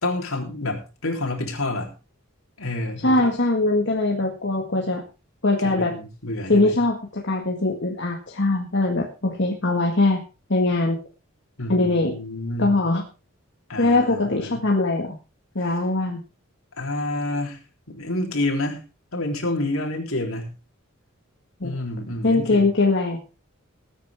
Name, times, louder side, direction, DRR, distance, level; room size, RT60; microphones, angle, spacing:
voice 1, 0.0-1.9 2.6-3.3 5.6-6.8 11.6-12.8 13.7-14.7 16.8-17.6 17.9-18.8 19.1-20.5 21.6-22.7, left 2 dB, 75° left, 2 dB, 3.8 m, -28 dB
voice 2, 3.0-5.0 5.4-6.0 6.5-10.2 10.5-11.0 11.7-12.1 12.6-13.0 13.8-15.2 15.6-16.2 21.6-21.8 22.2-23.2, left 2 dB, 55° left, 0 dB, 1.9 m, -21 dB
20.0 x 9.3 x 3.6 m, 0.31 s
head